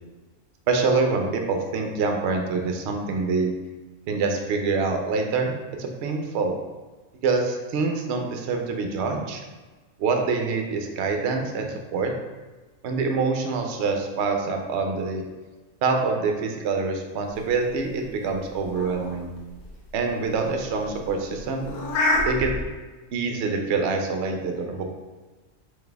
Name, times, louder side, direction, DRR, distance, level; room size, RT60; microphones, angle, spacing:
voice 1, 0.7-3.6 4.1-5.5 5.8-6.6 7.2-9.4 10.0-12.1 12.8-15.2 15.8-19.3 19.9-21.7 22.3-22.6 23.1-24.8, right 4 dB, 65° right, 3 dB, 0.8 m, -25 dB
sound 1, 17.3-22.6, left 2 dB, 80° left, 1.1 m, -30 dB
4.1 x 2.7 x 3.3 m, 1.3 s
omnidirectional pair, 1.4 m